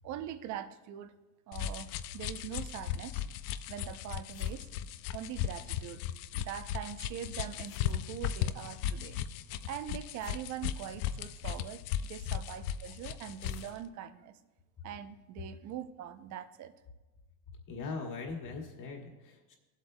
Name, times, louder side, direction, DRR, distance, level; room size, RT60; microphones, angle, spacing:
voice 1, 0.0-1.1 1.5-3.2 3.7-4.7 5.1-6.0 6.3-9.2 9.7-11.8 12.1-14.4 14.8-16.7, right 10 dB, 40° right, 12 dB, 0.6 m, -42 dB
sound 1, 1.5-13.7, left 10 dB, 65° left, 0.6 m, -37 dB
sound 2, 2.9-3.2 3.6-3.7 4.3-4.7 4.9-5.0 5.2-5.3 7.5-8.4 9.8-9.9 10.2-11.4 13.3-13.8, left 8 dB, 85° left, 1.2 m, -58 dB
voice 2, 17.7-19.5, left 4 dB, 40° left, 1 dB, 2.1 m, -40 dB
18.5 x 8.2 x 2.2 m, 1.1 s
supercardioid pair, 120°, 47 cm